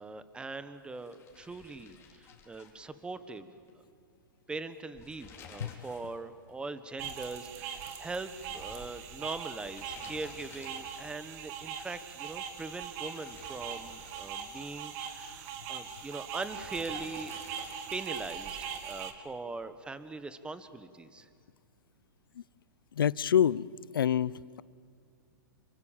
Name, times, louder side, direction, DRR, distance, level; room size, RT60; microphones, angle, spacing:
voice 1, 0.0-3.5 4.5-17.3 17.9-21.3, right 3 dB, 10° right, 12 dB, 1.4 m, -41 dB
sound 1, 0.9-3.4 3.7-3.8 4.8-6.2 6.5-6.6 8.2-11.3 12.9-14.9 16.5-18.2, left 5 dB, 20° left, 4.1 m, -53 dB
sound 2, 7.0-19.1, right 7 dB, 45° right, 2.5 m, -41 dB
voice 2, 22.9-24.3, left 9 dB, 85° left, 22 dB, 0.6 m, -27 dB
28.5 x 24.5 x 7.5 m, 2.3 s
hypercardioid pair, 135°, 11 cm